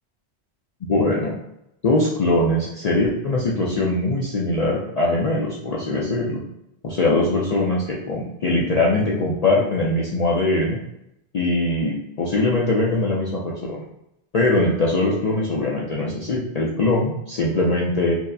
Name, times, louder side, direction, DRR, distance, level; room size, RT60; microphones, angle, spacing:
voice 1, 0.8-1.4 1.8-6.4 6.8-10.8 11.3-13.8 14.3-18.2, left 2 dB, 55° left, -4 dB, 0.4 m, -21 dB
4.5 x 2.0 x 2.6 m, 0.83 s
omnidirectional pair, 1.2 m